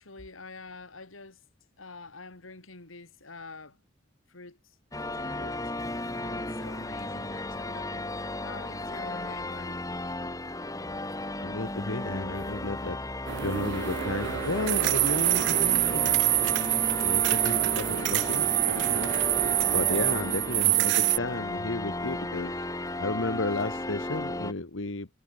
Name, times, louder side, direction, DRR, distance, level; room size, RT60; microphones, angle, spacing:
voice 1, 0.0-1.4 1.8-3.8 4.3-4.6 5.2-5.6 6.2-8.1 8.4-9.8, left 3 dB, 90° left, 3.1 m, -46 dB
sound 1, 4.9-24.5, left 2 dB, 15° left, 3.0 m, -34 dB
voice 2, 11.4-13.0 13.4-16.2 17.0-19.1 19.7-22.6 23.0-25.1, left 2 dB, 70° left, 1.7 m, -33 dB
sound 2, 13.3-21.2, right 17 dB, 60° right, 0.3 m, -26 dB
head